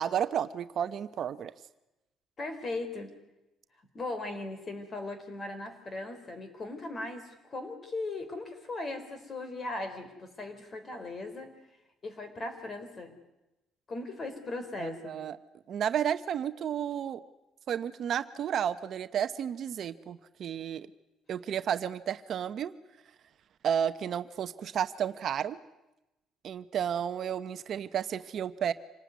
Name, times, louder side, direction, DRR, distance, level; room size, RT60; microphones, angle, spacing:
voice 1, 0.0-1.5 14.8-15.4 15.7-17.2 17.7-20.9 21.3-22.7 23.6-25.6 26.4-28.7, right 9 dB, 50° right, 11 dB, 0.9 m, -32 dB
voice 2, 2.4-3.1 3.9-11.5 12.0-13.2 13.9-15.2, left 2 dB, 30° left, 9 dB, 3.9 m, -38 dB
26.5 x 19.0 x 9.4 m, 0.98 s
cardioid pair, 140°, 0 cm